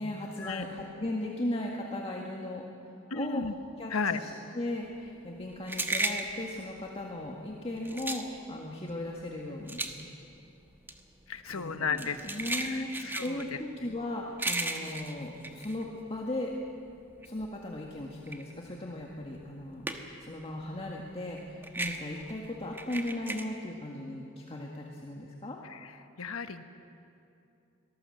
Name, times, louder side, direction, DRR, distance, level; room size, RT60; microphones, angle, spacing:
voice 1, 0.0-3.4 3.8-9.8 11.5-16.5 17.2-19.9 20.2-25.6, left 1 dB, 30° left, -1 dB, 1.7 m, -37 dB
voice 2, 3.1-3.5 3.9-4.2 11.3-12.3 12.6-13.6 25.6-25.9 26.2-26.6, left 5 dB, 85° left, 9 dB, 1.2 m, -34 dB
sound 1, 4.9-16.5 16.9-20.3 20.6-23.4, right 2 dB, 10° right, 1.4 m, -36 dB
24.5 x 18.5 x 7.8 m, 2.7 s
head